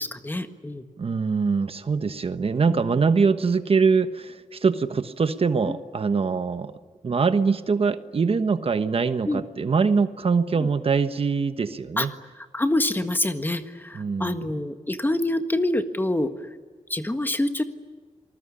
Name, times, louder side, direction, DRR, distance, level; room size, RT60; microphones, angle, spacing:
voice 1, 0.0-0.8 2.7-3.0 9.2-9.4 10.6-10.7 12.0-12.1 12.4-16.3 16.9-17.6, left 1 dB, 15° left, 8 dB, 1.6 m, -26 dB
voice 2, 1.0-6.7 7.0-12.1 13.9-14.5, right 5 dB, 50° right, 10 dB, 1.2 m, -23 dB
27.5 x 20.0 x 9.9 m, 1.5 s
wide cardioid pair, 125°, 12 cm